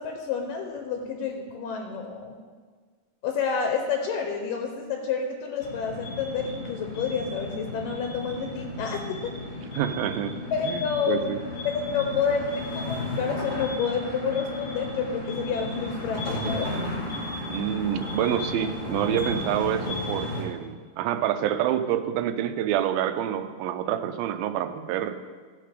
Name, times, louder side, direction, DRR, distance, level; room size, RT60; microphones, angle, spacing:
voice 1, 0.0-2.4 3.2-9.2 10.5-11.2 11.9-16.7, left 6 dB, 75° left, 3 dB, 2.4 m, -29 dB
sound 1, 5.6-20.4, left 2 dB, 55° left, 0.5 m, -34 dB
voice 2, 9.8-11.4 17.5-25.2, right 10 dB, 85° right, 9 dB, 2.4 m, -27 dB
14.5 x 6.6 x 5.1 m, 1.5 s
omnidirectional pair, 4.2 m